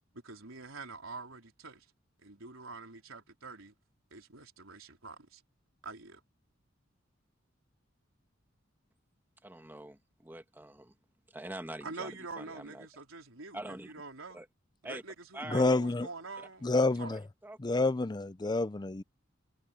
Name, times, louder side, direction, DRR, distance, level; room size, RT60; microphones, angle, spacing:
voice 1, 0.1-1.9 2.2-3.7 4.1-5.4 5.8-6.2 11.8-14.4 14.8-16.7 17.0-17.1, right 3 dB, 90° right, 4.1 m, -46 dB
voice 2, 9.4-11.0 11.3-12.9 13.5-13.9 14.3-14.5 14.8-15.0 15.3-15.7 16.4-16.5 16.7-17.9, right 1 dB, 10° right, 1.5 m, -45 dB
voice 3, 15.5-16.1 16.6-17.2 17.6-19.0, left 2 dB, 20° left, 0.5 m, -28 dB
head